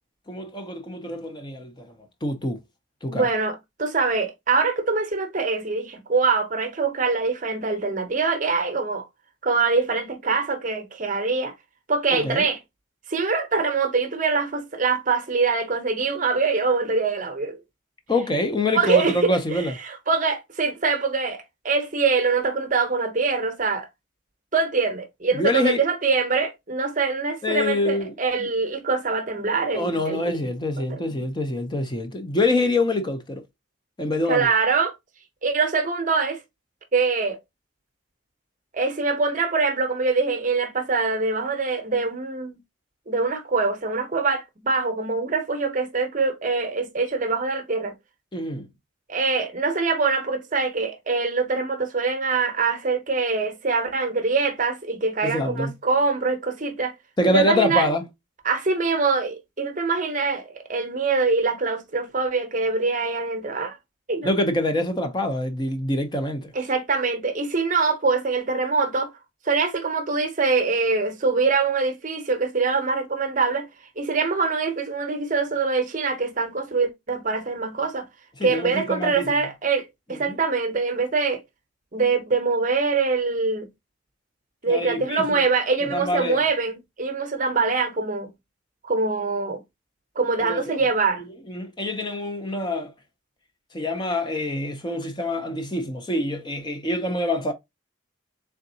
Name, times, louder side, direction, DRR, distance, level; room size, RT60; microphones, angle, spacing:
voice 1, 0.3-1.9 2.2-2.6 3.0-3.3 12.1-12.5 18.1-19.7 25.3-25.8 27.4-28.5 29.7-33.4 34.0-34.5 48.3-48.7 55.2-55.7 57.2-58.0 64.2-66.5 78.4-79.3 80.1-80.3 84.7-85.4 85.9-86.4 90.4-90.8 91.5-92.9 93.7-97.5, left 1 dB, 20° left, 0.5 m, -25 dB
voice 2, 3.1-9.1 9.4-11.5 11.9-12.6 13.1-17.6 18.7-23.9 24.5-30.4 30.9-31.1 34.3-34.9 35.4-36.4 36.9-37.4 38.7-42.6 43.1-47.9 49.1-56.9 57.2-57.9 58.4-63.8 64.1-64.4 66.5-69.1 69.4-73.7 74.0-78.1 78.4-81.4 81.9-83.7 84.6-88.3 88.8-89.6 90.2-91.2, right 4 dB, 40° right, 0.7 m, -24 dB
3.8 x 3.4 x 2.7 m
head